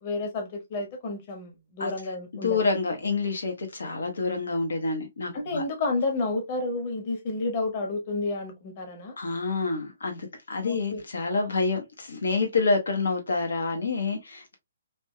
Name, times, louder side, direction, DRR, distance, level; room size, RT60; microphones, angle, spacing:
voice 1, 0.0-2.6 5.3-9.2 10.6-11.0, left 3 dB, 40° left, 1.5 m, -30 dB
voice 2, 2.4-5.6 9.2-14.6, left 3 dB, 65° left, 1.3 m, -28 dB
5.1 x 2.7 x 2.2 m
figure-of-eight pair, 130°, 0 cm